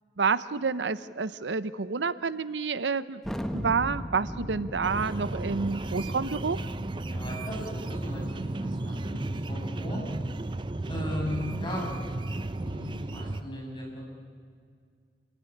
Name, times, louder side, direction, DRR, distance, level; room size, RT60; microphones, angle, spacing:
voice 1, 0.2-3.2 3.5-6.6, right 5 dB, 90° right, 15 dB, 0.7 m, -29 dB
Thunder, 3.2-8.4, equal, ahead, 1.2 m, -38 dB
sound 1, 4.8-13.4, right 2 dB, 25° right, 0.7 m, -34 dB
voice 2, 7.1-10.0 10.9-11.9 12.6-14.0, left 1 dB, 30° left, -2 dB, 7.6 m, -37 dB
27.0 x 16.5 x 9.9 m, 2.1 s
head